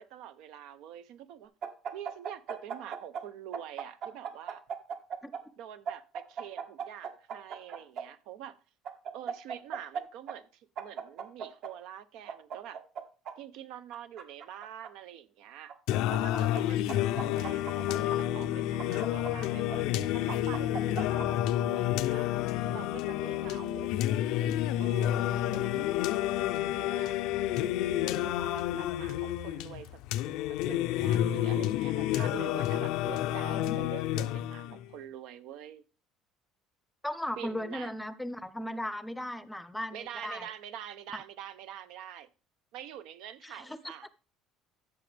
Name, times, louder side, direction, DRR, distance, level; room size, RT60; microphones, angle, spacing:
voice 1, 0.0-1.5 1.9-4.6 5.6-8.6 9.1-12.8 13.4-15.7 16.1-22.3 22.7-23.9 24.8-26.1 26.8-27.2 28.1-30.0 30.6-35.8 37.4-37.9 39.9-42.3 42.7-44.1, right 10 dB, 75° right, 0.8 m, -46 dB
sound 1, 1.6-3.2 3.5-5.4 5.9-8.0 8.8-10.0 10.3-10.4 10.8-11.7 12.3-13.3 13.9-14.9 15.7-16.6 16.9-18.2 18.8-19.8 20.3-21.3, right 7 dB, 55° right, 1.5 m, -37 dB
Singing, 15.9-34.9, left 13 dB, 75° left, 0.5 m, -30 dB
voice 2, 33.5-33.9 37.0-40.5 41.1-41.2 43.4-43.8, left 1 dB, 5° left, 0.6 m, -37 dB
14.0 x 6.2 x 3.4 m
cardioid pair, 135°, 0 cm